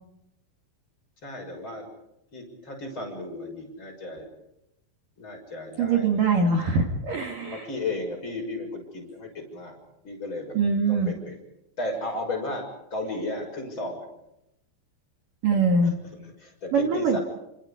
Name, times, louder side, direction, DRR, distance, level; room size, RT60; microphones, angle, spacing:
voice 1, 1.2-1.9 2.3-4.3 5.2-6.1 7.4-9.8 10.0-10.6 10.9-11.4 11.8-14.0 15.8-15.9 16.4-17.2, left 2 dB, 25° left, 2 dB, 6.9 m, -34 dB
voice 2, 5.8-7.7 10.5-11.1 15.4-15.9 16.7-17.2, right 4 dB, 55° right, 2 dB, 3.3 m, -23 dB
29.0 x 27.0 x 5.1 m, 0.84 s
omnidirectional pair, 5.1 m